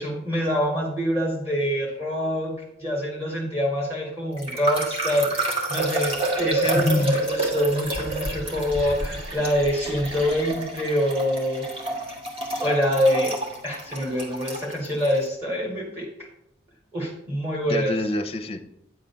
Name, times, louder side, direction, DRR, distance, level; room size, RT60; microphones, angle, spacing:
voice 1, 0.0-2.5 2.8-11.7 12.6-13.3 13.6-16.1 16.9-17.9, equal, 15° right, -2 dB, 1.8 m, -25 dB
sound 1, 4.4-15.2, right 2 dB, 30° right, 1.6 m, -29 dB
sound 2, 6.2-11.0, left 1 dB, 65° right, 2.3 m, -39 dB
voice 2, 6.6-7.2 17.7-18.6, left 2 dB, 30° left, 6 dB, 0.7 m, -25 dB
9.2 x 3.8 x 6.8 m, 0.74 s
head